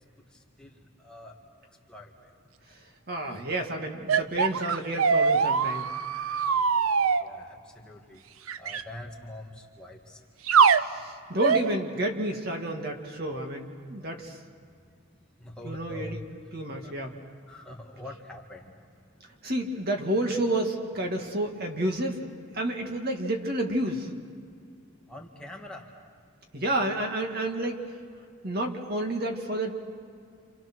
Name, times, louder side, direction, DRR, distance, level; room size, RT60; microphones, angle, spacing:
voice 1, 0.0-1.4 1.9-2.3 7.2-8.2 8.6-10.2 15.4-16.2 16.8-17.1 17.5-18.7 19.3-19.4 25.1-25.9, left 1 dB, 5° left, -1 dB, 2.0 m, -44 dB
voice 2, 3.1-5.9 10.7-14.4 15.6-16.2 16.5-17.2 19.4-22.2 22.5-24.1 26.5-27.8 28.4-29.8, right 1 dB, 45° right, 3 dB, 2.2 m, -30 dB
sound 1, 4.1-7.2 8.5-8.8 10.5-10.8 11.4-11.7, right 6 dB, 85° right, 0.6 m, -22 dB
29.5 x 28.0 x 6.3 m, 2.2 s
head